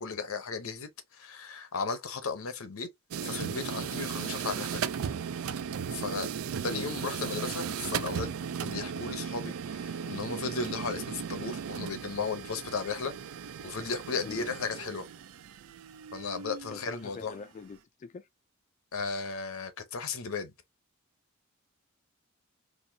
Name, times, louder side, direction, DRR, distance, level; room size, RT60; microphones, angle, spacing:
voice 1, 0.0-2.9 3.2-4.9 5.9-6.3 6.6-8.3 8.6-13.2 13.6-15.1 16.1-17.4 18.9-20.5, left 4 dB, 85° left, 0.8 m, -35 dB
sound 1, 3.1-17.4, right 7 dB, 85° right, 0.4 m, -36 dB
voice 2, 6.7-7.0 14.3-14.5 16.7-18.3, left 5 dB, 35° left, 0.3 m, -43 dB
4.2 x 2.6 x 2.7 m
head